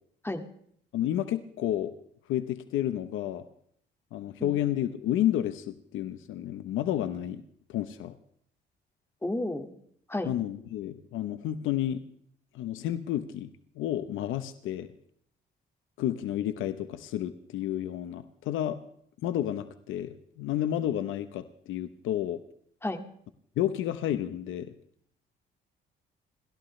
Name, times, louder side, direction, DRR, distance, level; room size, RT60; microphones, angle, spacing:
voice 1, 0.9-1.9 2.3-3.5 4.1-7.4 7.7-8.1 10.2-12.0 12.5-13.5 13.8-14.9 16.0-18.8 19.2-22.4 23.6-24.7, left 12 dB, 90° left, 11 dB, 1.0 m, -31 dB
voice 2, 9.2-9.7 10.1-10.3 22.8-23.0, left 1 dB, 10° left, 6 dB, 2.1 m, -31 dB
29.5 x 14.0 x 3.3 m, 0.65 s
cardioid pair, 90°, 20 cm